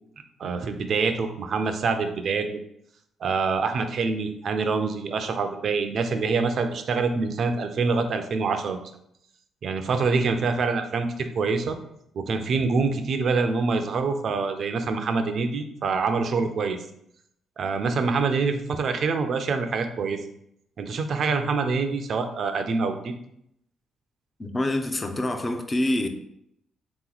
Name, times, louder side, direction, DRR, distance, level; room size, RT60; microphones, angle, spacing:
voice 1, 0.4-2.5 3.2-8.8 9.6-11.8 12.1-16.8 17.6-20.2 20.8-23.1, right 4 dB, 60° right, 0.5 m, -25 dB
voice 2, 24.4-26.1, left 1 dB, 25° left, 0.5 m, -26 dB
3.7 x 3.0 x 3.9 m
cardioid pair, 90°, 0 cm